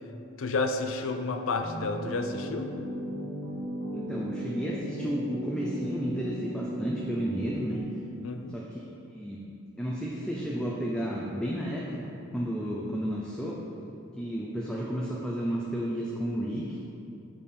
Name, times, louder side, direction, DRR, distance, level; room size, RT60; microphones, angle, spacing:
voice 1, 0.4-2.7 8.2-8.6, left 3 dB, 65° left, 7 dB, 0.5 m, -30 dB
sound 1, 1.6-7.8, right 1 dB, 90° left, 1.4 m, -36 dB
voice 2, 3.9-7.8 8.5-8.8 9.1-9.4 9.8-12.0 12.3-13.6 14.2-16.8, equal, 5° left, -4 dB, 0.4 m, -32 dB
6.7 x 5.3 x 4.3 m, 2.7 s
head